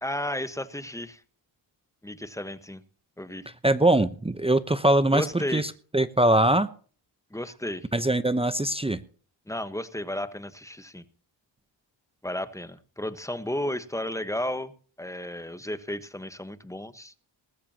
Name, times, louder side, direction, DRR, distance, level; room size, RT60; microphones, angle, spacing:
voice 1, 0.0-1.2 2.0-2.8 3.2-3.5 5.1-5.6 7.3-7.9 9.5-11.0 12.2-14.7 15.0-17.1, left 1 dB, 5° left, 12 dB, 1.2 m, -33 dB
voice 2, 3.6-6.7 7.9-9.0, right 1 dB, 10° right, 12 dB, 0.8 m, -22 dB
19.5 x 14.5 x 2.9 m, 0.42 s
cardioid pair, 80°, 46 cm